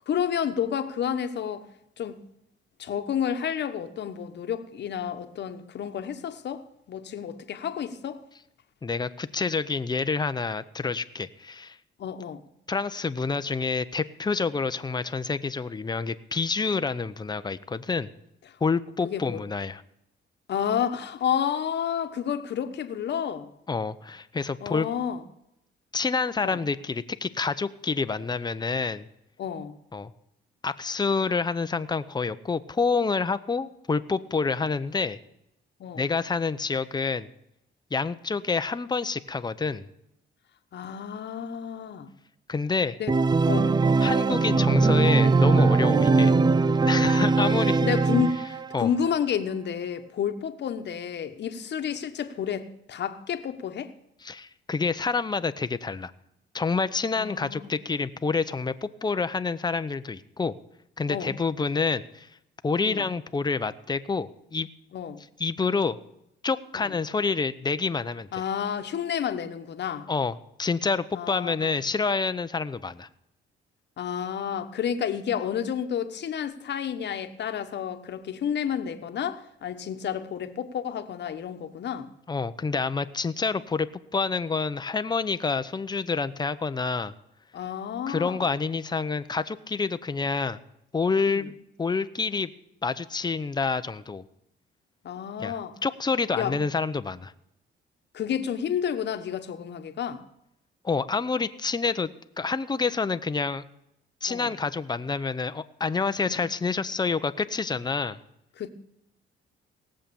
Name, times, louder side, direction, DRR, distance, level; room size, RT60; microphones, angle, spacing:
voice 1, 0.1-1.7 2.0-2.2 2.8-8.2 12.0-12.4 19.0-19.4 20.5-23.5 24.6-25.2 26.4-26.6 29.4-29.8 35.8-36.0 40.7-42.1 43.0-43.1 43.5-43.8 47.4-47.5 47.8-53.9 57.2-57.7 61.1-61.3 62.8-63.0 64.9-65.2 66.7-66.9 68.3-70.1 71.1-71.7 74.0-82.1 87.5-88.5 91.3-91.4 95.0-95.7 96.4-96.6 98.1-100.2 104.3-104.5 106.2-106.4 108.6-108.7, left 8 dB, 60° left, 1.2 m, -30 dB
voice 2, 8.8-11.8 12.7-18.1 18.6-19.8 23.7-24.9 25.9-29.1 29.9-30.1 30.6-35.2 35.9-37.3 37.9-39.8 42.5-43.0 44.0-46.3 46.7-47.8 48.7-48.9 54.2-56.1 56.5-60.5 61.0-62.3 62.6-64.7 65.4-66.0 66.4-68.3 70.1-73.1 82.3-87.1 88.1-90.6 90.9-91.5 91.8-92.5 92.8-94.2 95.4-97.3 100.8-103.6 104.2-108.2, left 4 dB, 20° left, 0.7 m, -28 dB
Organ, 43.1-48.8, right 4 dB, 20° right, 0.4 m, -21 dB
18.0 x 7.6 x 7.0 m
cardioid pair, 90°, 20 cm